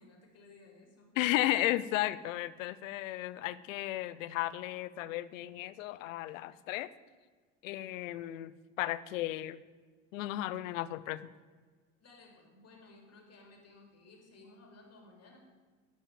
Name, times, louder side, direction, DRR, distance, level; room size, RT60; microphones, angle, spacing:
voice 1, 0.0-1.1 12.0-15.4, left 3 dB, 40° left, 1 dB, 3.3 m, -57 dB
voice 2, 1.2-6.9 7.6-9.6 10.1-11.2, left 15 dB, 80° left, 16 dB, 0.6 m, -34 dB
10.0 x 5.6 x 8.5 m, 1.4 s
hypercardioid pair, 75°, 38 cm